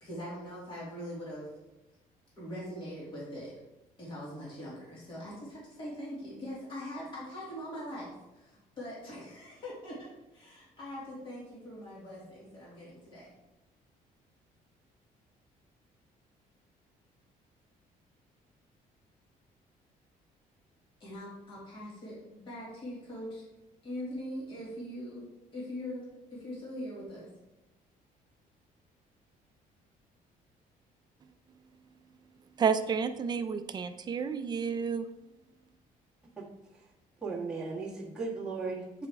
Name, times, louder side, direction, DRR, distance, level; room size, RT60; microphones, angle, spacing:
voice 1, 0.0-1.5 2.4-3.5 4.0-13.3 21.0-23.4 23.8-25.2 25.5-27.3, equal, 35° left, -6 dB, 2.3 m, -42 dB
voice 2, 32.6-35.1, right 6 dB, 25° right, 9 dB, 0.4 m, -30 dB
voice 3, 37.2-39.1, right 4 dB, 5° right, -6 dB, 1.5 m, -37 dB
8.2 x 5.0 x 3.5 m, 0.98 s
cardioid pair, 170°, 15 cm